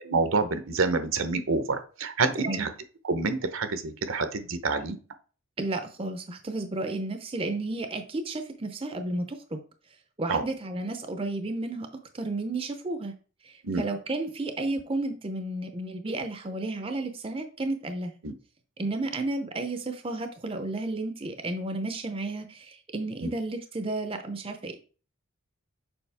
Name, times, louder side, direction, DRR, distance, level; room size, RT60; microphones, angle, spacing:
voice 1, 0.1-2.7 3.0-5.0 10.3-10.4 13.6-13.8 18.2-18.3 23.2-23.3, right 3 dB, 65° right, 10 dB, 0.8 m, -27 dB
voice 2, 2.4-2.7 5.6-9.6 10.2-11.9 12.1-13.1 13.4-18.1 18.8-24.8, right 2 dB, 25° right, 7 dB, 0.5 m, -32 dB
7.0 x 4.9 x 3.4 m, 0.38 s
head